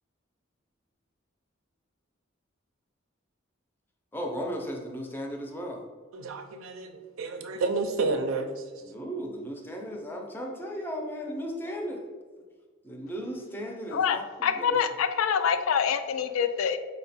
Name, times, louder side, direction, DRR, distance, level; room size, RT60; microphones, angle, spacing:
voice 1, 4.1-5.8 8.8-12.0 12.8-14.7, equal, 10° left, 1 dB, 0.4 m, -36 dB
voice 2, 6.1-8.7, right 3 dB, 85° right, 7 dB, 0.5 m, -30 dB
voice 3, 13.9-16.8, left 7 dB, 80° left, 10 dB, 0.3 m, -26 dB
4.4 x 2.1 x 4.0 m, 1.4 s
head